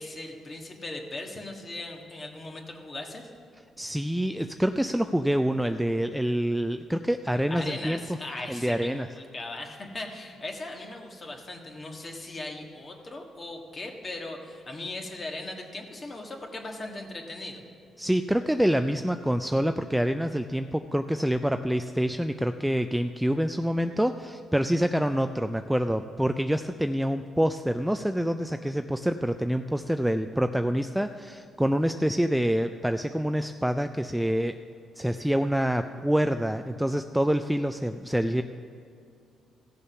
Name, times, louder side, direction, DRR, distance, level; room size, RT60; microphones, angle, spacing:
voice 1, 0.0-3.3 7.5-17.6, left 2 dB, 35° left, 2 dB, 1.6 m, -38 dB
voice 2, 3.8-8.0 8.5-9.1 18.0-34.6 35.0-38.4, equal, 5° right, 8 dB, 0.3 m, -26 dB
15.5 x 6.9 x 5.6 m, 2.4 s
cardioid pair, 90°, 0 cm